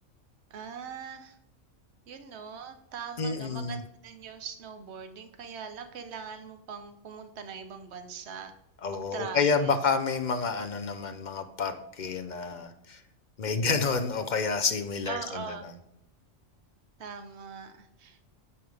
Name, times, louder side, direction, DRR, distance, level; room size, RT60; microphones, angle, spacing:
voice 1, 0.5-1.4 2.1-8.5 8.9-9.8 15.0-15.7 17.0-18.2, right 6 dB, 65° right, 8 dB, 1.1 m, -41 dB
voice 2, 3.2-3.8 8.8-13.0 13.4-15.7, left 5 dB, 50° left, 9 dB, 0.6 m, -29 dB
9.5 x 5.3 x 3.3 m, 0.81 s
omnidirectional pair, 1.3 m